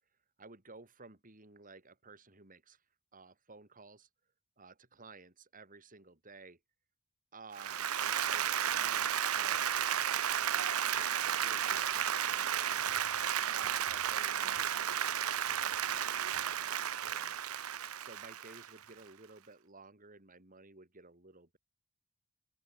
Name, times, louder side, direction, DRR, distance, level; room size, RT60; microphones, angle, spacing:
voice 1, 0.4-2.8 3.1-4.1 4.6-6.6 7.3-9.9 10.7-12.9 13.5-21.6, right 3 dB, 40° right, 3.6 m, -55 dB
Applause, 7.6-18.9, right 9 dB, 85° right, 1.0 m, -33 dB
open air
head